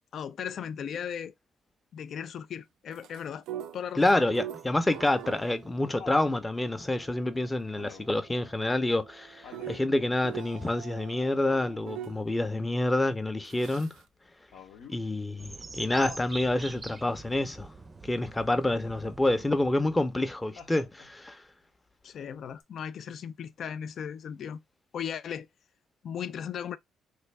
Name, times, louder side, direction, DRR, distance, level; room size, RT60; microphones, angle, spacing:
voice 1, 0.1-1.3 1.9-3.5 3.7-4.1 22.0-24.6 24.9-25.5 26.0-26.8, left 8 dB, 65° left, 0.3 m, -37 dB
sound 1, 2.9-12.2 13.4-14.0, right 11 dB, 90° right, 0.4 m, -44 dB
voice 2, 4.0-13.9 14.9-17.7 18.0-21.4, left 2 dB, 15° left, 0.6 m, -28 dB
Laughter, 5.1-6.4 7.8-8.3 9.4-9.9 11.5-12.0 14.5-15.0 15.9-16.3 18.7-19.2 20.6-21.2 22.6-22.7, left 6 dB, 80° left, 0.9 m, -48 dB
sound 2, 15.4-20.4, right 3 dB, 25° right, 0.5 m, -45 dB
3.3 x 2.6 x 3.2 m
cardioid pair, 90°, 0 cm